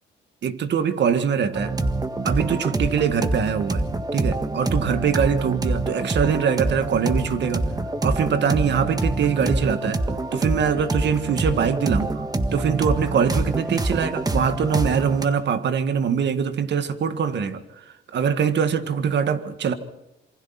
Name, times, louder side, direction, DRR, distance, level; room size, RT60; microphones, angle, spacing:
voice 1, 0.4-1.8 2.2-3.8 4.1-7.7 8.0-10.0 10.3-12.2 12.5-17.6 18.1-19.7, right 7 dB, 60° right, 1.9 m, -23 dB
sound 1, 1.5-15.3, right 2 dB, 20° right, 1.7 m, -26 dB
27.0 x 25.0 x 4.3 m
cardioid pair, 90°, 20 cm